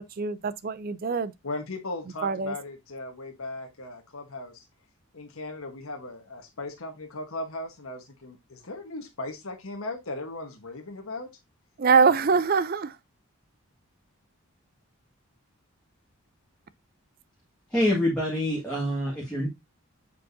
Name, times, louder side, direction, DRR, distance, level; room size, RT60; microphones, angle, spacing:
voice 1, 0.2-1.3 2.2-2.5 11.8-12.9, right 5 dB, 40° right, 0.4 m, -23 dB
voice 2, 1.4-4.6 5.1-11.3, left 2 dB, 70° left, 1.2 m, -37 dB
voice 3, 17.7-19.5, left 1 dB, 5° left, 1.7 m, -26 dB
7.5 x 4.8 x 2.6 m
head